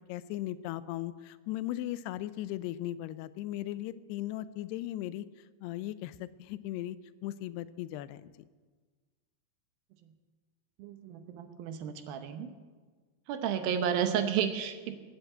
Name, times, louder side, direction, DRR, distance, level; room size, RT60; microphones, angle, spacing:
voice 1, 0.1-5.3 5.6-7.0 7.2-8.3, left 14 dB, 90° left, 15 dB, 2.7 m, -37 dB
voice 2, 10.8-12.5 13.3-15.0, right 8 dB, 75° right, 7 dB, 2.6 m, -32 dB
19.0 x 8.0 x 8.2 m, 1.4 s
omnidirectional pair, 4.6 m